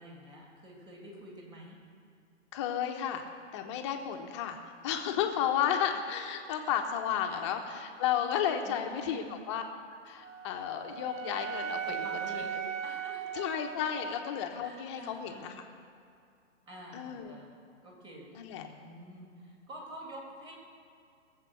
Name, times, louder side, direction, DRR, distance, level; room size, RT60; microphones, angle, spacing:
voice 1, 0.0-1.8 7.3-7.5 8.6-9.5 11.8-12.5 12.8-13.5 14.1-14.2 14.6-15.6 16.7-17.5 17.8-18.3 18.5-20.5, right 1 dB, 10° right, -2 dB, 2.2 m, -48 dB
voice 2, 2.5-3.2 3.5-4.6 4.8-9.6 10.1-12.0 12.3-12.6 13.3-15.6 16.9-17.4 18.3-18.7, left 9 dB, 25° left, 4 dB, 0.9 m, -33 dB
Wind instrument woodwind instrument, 10.2-14.4, right 8 dB, 85° right, 0.7 m, -38 dB
20.5 x 7.5 x 6.8 m, 2.4 s
hypercardioid pair, 150°, 37 cm